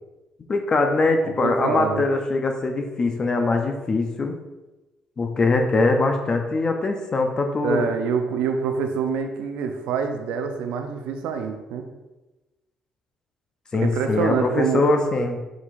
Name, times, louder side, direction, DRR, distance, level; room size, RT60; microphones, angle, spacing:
voice 1, 0.5-4.3 5.2-7.9 13.7-15.4, left 3 dB, 40° left, 4 dB, 0.5 m, -22 dB
voice 2, 1.2-2.1 7.6-11.8 13.7-14.9, right 6 dB, 75° right, 5 dB, 0.5 m, -26 dB
4.6 x 3.9 x 2.4 m, 1.1 s
supercardioid pair, 60°, 2 cm